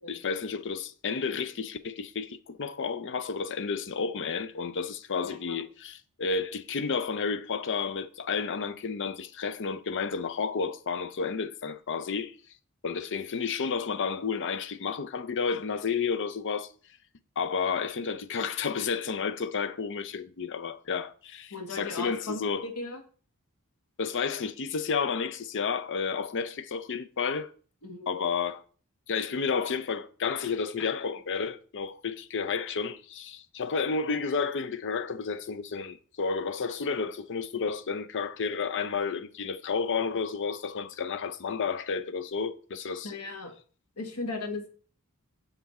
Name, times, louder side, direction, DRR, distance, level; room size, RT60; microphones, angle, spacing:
voice 1, 0.1-12.3 12.8-16.7 17.4-22.7 24.0-27.5 28.1-28.6 29.1-43.1, left 5 dB, 55° left, 0.6 m, -31 dB
voice 2, 5.2-5.6 21.5-23.0 27.8-28.1 43.0-43.5 44.0-44.7, left 3 dB, 75° left, 1.5 m, -37 dB
6.7 x 5.9 x 4.2 m
head